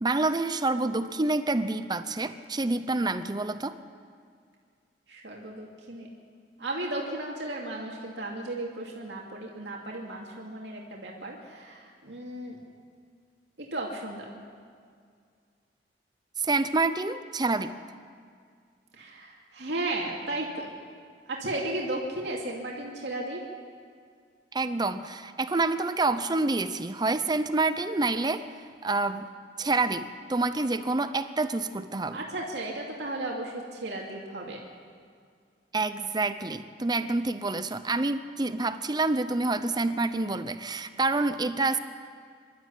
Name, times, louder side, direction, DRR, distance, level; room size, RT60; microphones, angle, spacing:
voice 1, 0.0-3.8 16.4-17.7 24.5-28.4 28.8-29.3 29.6-32.2 35.7-41.8, right 3 dB, 25° right, 11 dB, 0.7 m, -27 dB
voice 2, 5.1-6.1 6.6-12.6 13.6-14.3 18.9-20.7 21.3-23.4 32.1-34.6, right 2 dB, 75° right, -2 dB, 2.6 m, -35 dB
26.0 x 12.5 x 8.5 m, 2.2 s
head